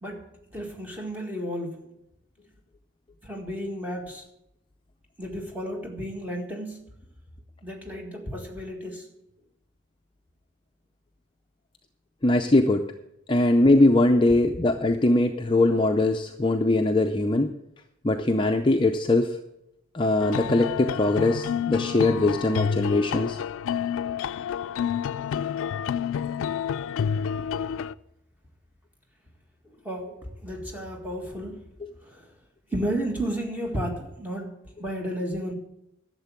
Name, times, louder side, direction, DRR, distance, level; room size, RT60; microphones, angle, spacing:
voice 1, 0.0-1.9 3.2-4.2 5.2-6.8 7.6-9.1 29.8-31.7 32.0-32.3 32.7-35.5, equal, 10° right, 0 dB, 1.8 m, -33 dB
voice 2, 12.2-12.9 13.3-17.5 18.0-19.4 19.9-23.4, left 2 dB, 25° left, 5 dB, 0.5 m, -21 dB
sound 1, 20.2-27.9, left 8 dB, 90° left, 0.3 m, -29 dB
11.5 x 7.4 x 7.2 m, 0.83 s
head